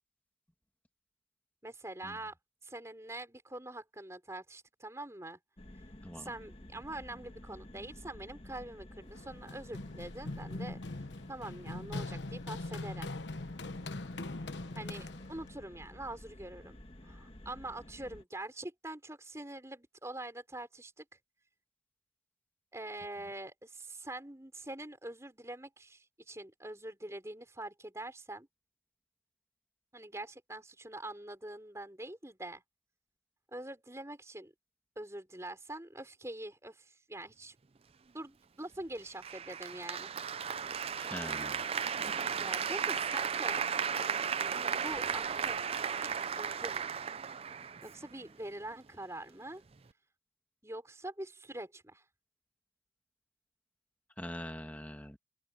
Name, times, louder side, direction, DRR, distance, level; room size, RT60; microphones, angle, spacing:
voice 1, 1.6-2.3 2.6-5.4 6.2-10.8 11.3-13.1 14.7-21.0 22.7-28.5 29.9-32.6 33.5-34.5 35.0-37.5 38.1-40.1 42.4-43.6 44.7-45.8 46.2-46.9 47.8-49.6 50.6-52.0, right 1 dB, 15° right, 4.3 m, -44 dB
sound 1, 5.6-18.2, left 1 dB, 30° left, 1.6 m, -52 dB
voice 2, 6.0-6.3 41.0-41.7 54.2-55.2, left 1 dB, 10° left, 2.4 m, -43 dB
Run, 9.2-15.5, left 2 dB, 75° left, 1.1 m, -41 dB
Applause, 39.2-48.2, right 7 dB, 35° right, 0.5 m, -35 dB
open air
head